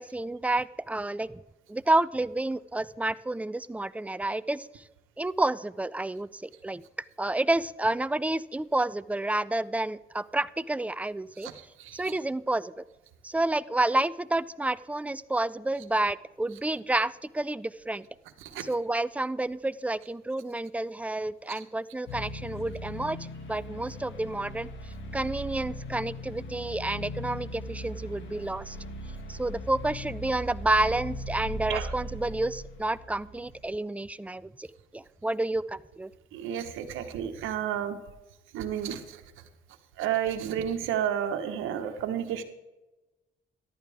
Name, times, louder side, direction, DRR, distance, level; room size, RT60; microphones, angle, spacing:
voice 1, 0.0-1.4 1.7-4.8 5.2-6.8 7.2-11.5 11.9-12.8 13.2-18.1 18.6-23.2 23.5-24.7 25.1-28.8 29.3-34.7 34.9-36.1, right 2 dB, 5° right, 17 dB, 0.4 m, -29 dB
voice 2, 11.4-12.2 18.4-18.6 21.5-21.6 31.7-31.9 36.3-38.0 38.5-39.2 40.0-42.4, right 9 dB, 90° right, 8 dB, 1.1 m, -31 dB
sound 1, 22.1-33.6, equal, 70° left, 1.8 m, -39 dB
14.0 x 11.5 x 3.5 m, 1.0 s
cardioid pair, 90°, 20 cm